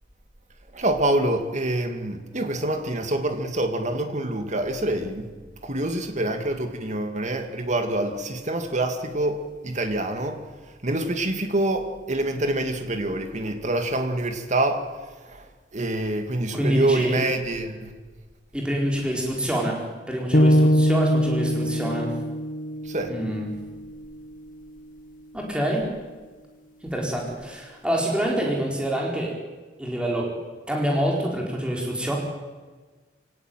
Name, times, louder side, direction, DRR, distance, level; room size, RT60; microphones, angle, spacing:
voice 1, 0.7-5.3 5.6-10.4 10.8-15.0 15.3-15.4 15.7-17.9 22.9-23.2, right 1 dB, 40° right, 2.3 m, -26 dB
voice 2, 16.5-17.2 18.5-22.1 23.0-23.5 25.3-25.9 26.8-29.3 29.8-30.3 30.7-32.1, equal, 5° right, 4.4 m, -26 dB
sound 1, 20.3-24.5, equal, 50° left, 1.1 m, -23 dB
24.5 x 17.5 x 9.2 m
head